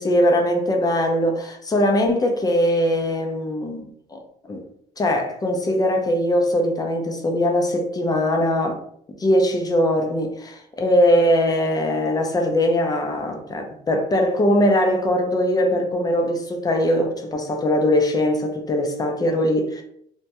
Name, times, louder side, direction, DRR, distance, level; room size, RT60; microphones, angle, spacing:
voice 1, 0.0-3.8 4.1-4.2 4.5-4.6 5.0-8.8 9.2-19.8, left 1 dB, 20° left, 0.4 m, -21 dB
2.2 x 2.1 x 2.7 m
cardioid pair, 110°, 17 cm